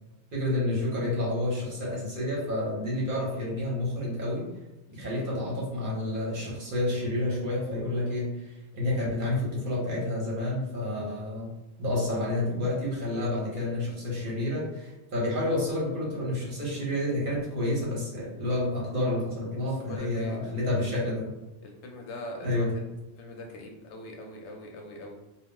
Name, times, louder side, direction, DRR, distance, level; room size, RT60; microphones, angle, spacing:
voice 1, 0.3-4.5 4.9-11.5 11.8-21.3 22.4-22.7, left 1 dB, 55° right, -5 dB, 0.9 m, -29 dB
voice 2, 19.6-20.4 21.6-22.8 23.2-25.1, left 1 dB, 85° left, 2 dB, 0.9 m, -42 dB
2.3 x 2.0 x 3.6 m, 0.99 s
omnidirectional pair, 1.1 m